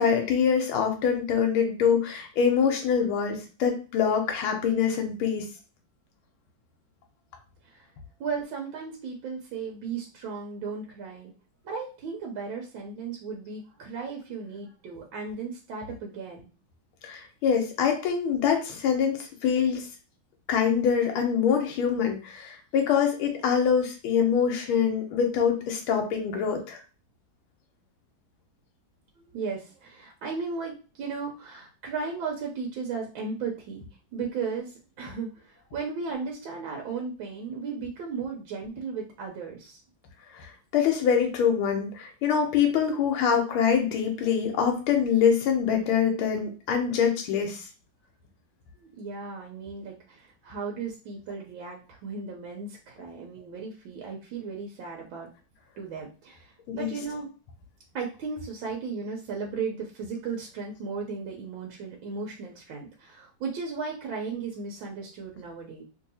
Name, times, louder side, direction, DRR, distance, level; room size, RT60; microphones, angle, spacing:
voice 1, 0.0-5.5 17.0-19.8 20.5-26.8 40.3-47.6 56.7-56.9, left 7 dB, 90° left, 3 dB, 1.5 m, -24 dB
voice 2, 8.2-11.3 11.6-16.5 29.2-33.8 34.1-39.8 48.7-55.3 55.8-57.3 57.9-65.8, right 5 dB, 80° right, -1 dB, 1.5 m, -35 dB
3.4 x 2.7 x 2.7 m, 0.35 s
omnidirectional pair, 2.2 m